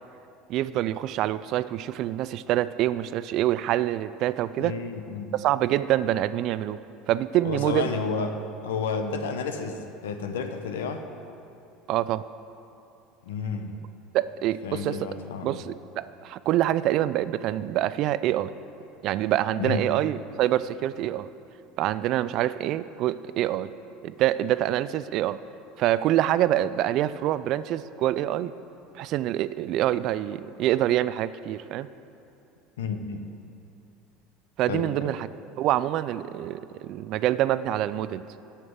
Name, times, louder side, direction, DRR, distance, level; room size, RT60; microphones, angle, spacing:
voice 1, 0.5-4.7 5.3-6.8 7.1-7.9 11.9-12.2 14.1-15.0 15.4-18.5 19.0-21.3 21.8-23.7 24.0-25.4 25.8-28.6 28.9-31.9 34.6-35.3 35.6-38.2, right 13 dB, 60° right, 15 dB, 0.3 m, -26 dB
voice 2, 4.6-5.3 7.4-11.0 13.2-13.8 14.6-15.6 19.6-19.9 32.8-33.2 34.7-35.1, left 5 dB, 90° left, 7 dB, 0.7 m, -31 dB
7.8 x 5.8 x 7.8 m, 2.7 s
hypercardioid pair, 90°, 0 cm